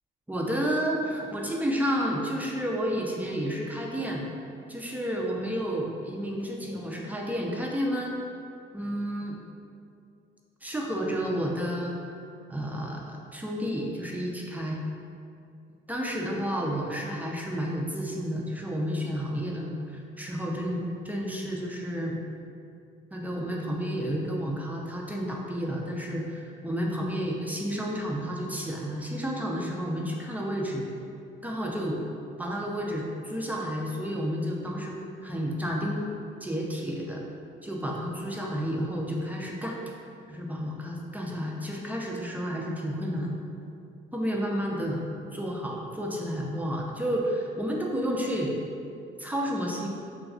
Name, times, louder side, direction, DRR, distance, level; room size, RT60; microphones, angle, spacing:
voice 1, 0.3-4.3 4.7-8.1 8.7-9.4 10.6-11.9 12.5-14.7 15.9-22.2 23.1-30.9 31.4-32.0 32.4-35.0 35.2-36.1 36.4-37.2 37.6-39.8 40.3-43.4 44.1-45.0 45.3-48.6 49.2-49.9, equal, 10° right, -2 dB, 0.3 m, -31 dB
2.3 x 2.3 x 3.5 m, 2.5 s
cardioid pair, 90°, 20 cm